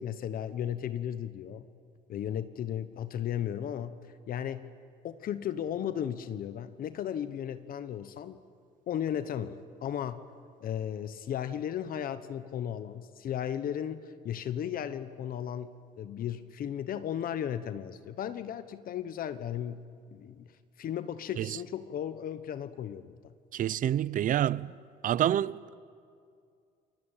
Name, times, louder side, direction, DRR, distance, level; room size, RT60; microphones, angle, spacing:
voice 1, 0.0-1.7 2.1-4.0 4.3-4.7 5.0-8.4 8.9-10.2 10.6-19.8 20.1-20.5 20.8-23.3, left 9 dB, 60° left, 1.2 m, -35 dB
voice 2, 23.5-24.7 25.0-25.8, right 11 dB, 50° right, 0.6 m, -28 dB
29.5 x 21.0 x 9.1 m
cardioid pair, 110°, 17 cm